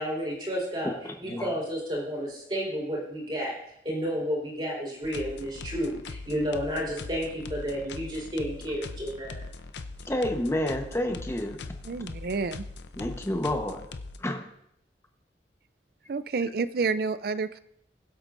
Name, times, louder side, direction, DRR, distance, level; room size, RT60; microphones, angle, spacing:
voice 1, 0.0-3.5 3.8-9.4, equal, 25° right, -4 dB, 4.0 m, -31 dB
voice 2, 1.0-1.5 10.1-11.6 13.0-13.8 14.2-14.5, left 1 dB, 15° left, 4 dB, 1.0 m, -29 dB
sound 1, 5.0-14.2, left 3 dB, 80° left, 0.6 m, -41 dB
voice 3, 11.9-12.6 16.1-17.6, right 4 dB, 55° right, 14 dB, 0.4 m, -29 dB
21.5 x 8.1 x 2.6 m, 0.76 s
head